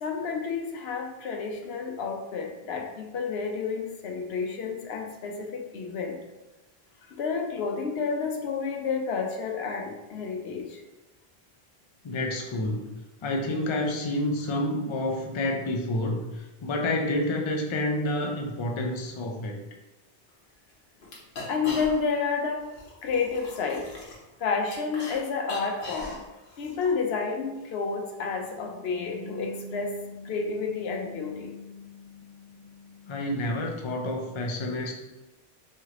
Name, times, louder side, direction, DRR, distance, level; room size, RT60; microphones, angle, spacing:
voice 1, 0.0-6.1 7.2-10.6 21.5-22.6 23.0-23.8 24.4-26.1 26.6-32.1, left 5 dB, 85° left, 2 dB, 0.9 m, -30 dB
voice 2, 12.0-12.9 13.2-19.6 33.1-34.9, left 1 dB, 40° left, 1 dB, 0.4 m, -29 dB
sound 1, 20.3-20.4 20.7-20.8 21.0-22.2 22.6-25.2 25.4-26.9, left 2 dB, 60° left, 1.0 m, -41 dB
3.2 x 3.1 x 3.7 m, 1.1 s
omnidirectional pair, 1.0 m